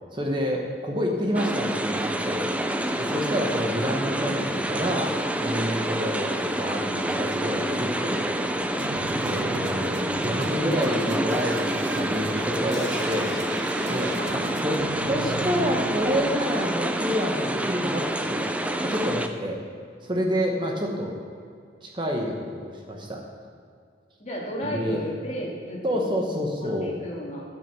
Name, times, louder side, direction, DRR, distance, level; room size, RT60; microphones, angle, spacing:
voice 1, 0.1-2.5 3.0-5.2 5.4-8.5 8.9-13.3 13.9-18.5 18.8-19.6 20.0-21.2 21.8-23.2 24.6-25.0 25.8-26.9, equal, 25° right, 0 dB, 1.1 m, -28 dB
sound 1, 1.3-19.3, right 1 dB, 5° right, 0.4 m, -27 dB
sound 2, 8.8-17.0, right 3 dB, 75° right, 0.7 m, -38 dB
sound 3, 12.7-14.7 15.0-15.1 15.4-15.5, left 4 dB, 75° left, 1.3 m, -45 dB
voice 2, 14.1-14.5 24.2-26.1 26.6-27.4, equal, 35° left, -3 dB, 2.0 m, -34 dB
13.5 x 6.2 x 6.1 m, 2.3 s
head